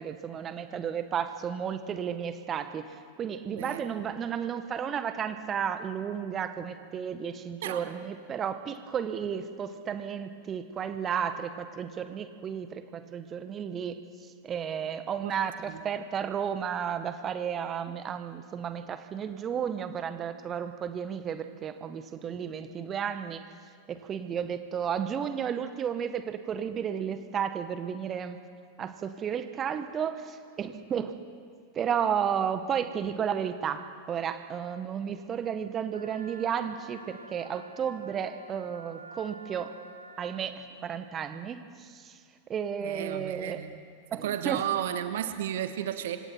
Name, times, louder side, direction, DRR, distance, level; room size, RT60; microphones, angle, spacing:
voice 1, 0.0-23.4 23.9-28.4 28.8-31.1 31.7-39.7 40.2-42.2 42.5-43.6 44.1-44.6, right 8 dB, 25° right, 9 dB, 1.5 m, -33 dB
voice 2, 3.5-4.1 7.6-7.8 15.2-15.3 15.7-15.8 42.8-43.7 44.2-46.2, right 11 dB, 55° right, 9 dB, 1.3 m, -33 dB
Wind instrument woodwind instrument, 35.9-40.4, right 2 dB, 80° right, 1.8 m, -48 dB
27.0 x 26.0 x 4.6 m, 2.2 s
figure-of-eight pair, 90°, 0 cm